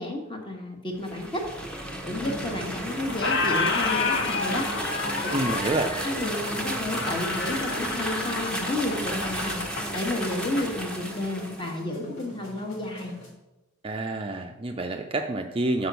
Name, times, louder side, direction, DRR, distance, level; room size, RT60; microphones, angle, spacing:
voice 1, 0.0-1.4 2.0-4.6 5.2-5.3 5.9-13.2, left 1 dB, 25° left, 2 dB, 1.2 m, -31 dB
sound 1, 1.0-11.8, right 1 dB, 5° left, 0.8 m, -33 dB
sound 2, 2.2-13.3, equal, 80° left, 2.3 m, -41 dB
Squeak, 2.2-2.8 3.1-10.7, left 4 dB, 60° left, 0.7 m, -30 dB
voice 2, 5.3-6.0 13.8-15.9, right 2 dB, 25° right, 4 dB, 0.4 m, -28 dB
6.0 x 5.1 x 6.7 m, 0.97 s
head